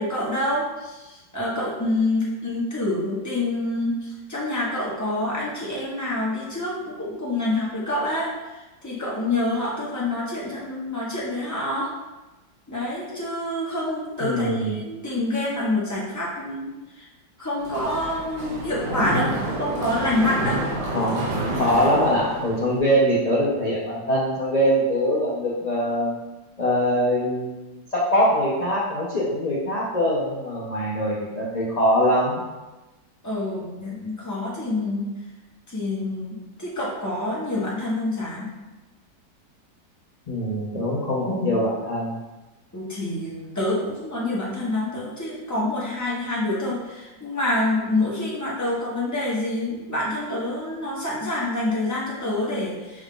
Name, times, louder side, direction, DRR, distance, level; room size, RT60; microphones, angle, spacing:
voice 1, 0.0-8.3 8.8-11.9 12.7-16.7 17.0-17.1 17.4-19.3 19.6-20.6 33.2-35.1 35.7-38.5 42.7-53.0, left 2 dB, 15° left, -6 dB, 0.7 m, -27 dB
voice 2, 14.2-14.8 20.8-26.2 26.6-27.7 27.9-32.4 40.3-42.1, equal, 65° left, -7 dB, 0.4 m, -23 dB
Mechanisms, 17.6-22.8, right 2 dB, 80° right, 1.5 m, -29 dB
6.0 x 2.4 x 3.8 m, 1.1 s
omnidirectional pair, 2.0 m